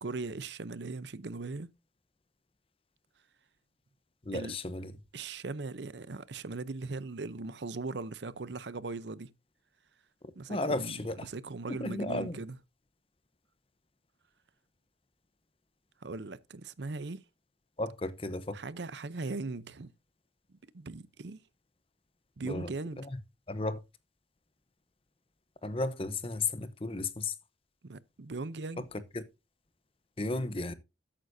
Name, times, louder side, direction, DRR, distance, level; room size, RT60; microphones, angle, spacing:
voice 1, 0.0-1.7 4.3-4.6 5.1-9.3 10.4-12.6 16.0-17.2 18.5-19.9 20.7-21.4 22.4-23.0 27.8-28.9, right 3 dB, 65° right, 0.7 m, -39 dB
voice 2, 4.3-4.9 10.5-11.3 11.7-12.4 17.8-18.6 22.4-22.7 23.0-23.1 23.5-23.8 25.6-27.3 28.8-28.9 29.1-29.2 30.2-30.7, left 2 dB, 30° left, 0.8 m, -34 dB
13.0 x 9.0 x 2.7 m
head